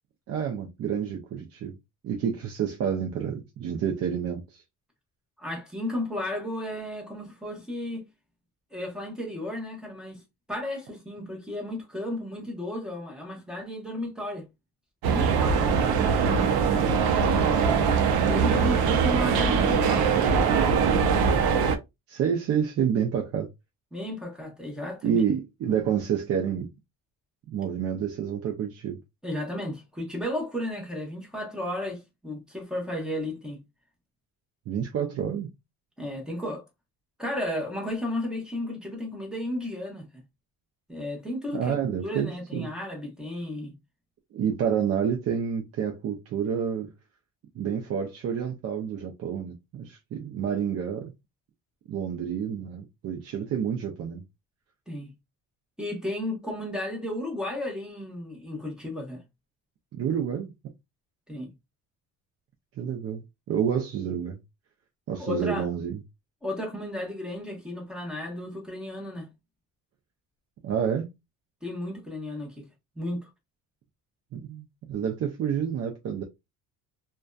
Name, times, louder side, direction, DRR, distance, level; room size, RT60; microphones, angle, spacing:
voice 1, 0.3-1.7 2.0-4.6 16.9-17.8 22.1-23.5 25.0-26.7 27.5-29.0 34.7-35.5 41.5-42.7 44.3-46.9 47.6-51.1 51.9-54.2 59.9-60.5 62.8-64.4 65.1-66.0 70.6-71.1 74.3-76.2, right 8 dB, 45° right, 0.5 m, -29 dB
voice 2, 5.4-8.0 8.7-10.2 10.5-14.5 15.0-15.7 18.3-21.1 23.9-25.2 29.2-33.6 36.0-36.6 37.2-40.1 40.9-41.8 42.0-43.7 54.9-55.1 55.8-59.2 61.3-61.5 65.2-65.7 66.4-69.3 71.6-72.7 73.0-73.3, left 1 dB, ahead, 0.8 m, -33 dB
sound 1, 15.0-21.8, right 6 dB, 85° right, 0.6 m, -22 dB
2.5 x 2.2 x 2.2 m
cardioid pair, 145°, 36 cm